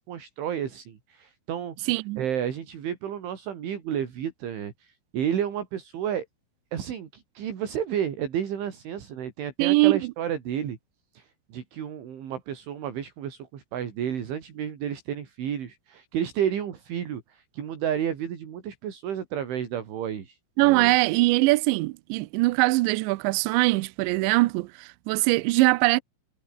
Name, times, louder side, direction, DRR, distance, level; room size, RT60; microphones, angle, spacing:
voice 1, 0.0-1.8 2.2-6.3 6.7-10.8 11.2-20.4 20.6-20.9, right 9 dB, 65° right, 5.6 m, -31 dB
voice 2, 1.9-2.2 9.6-10.0 20.6-26.0, right 22 dB, 85° right, 2.6 m, -22 dB
omnidirectional pair, 5.9 m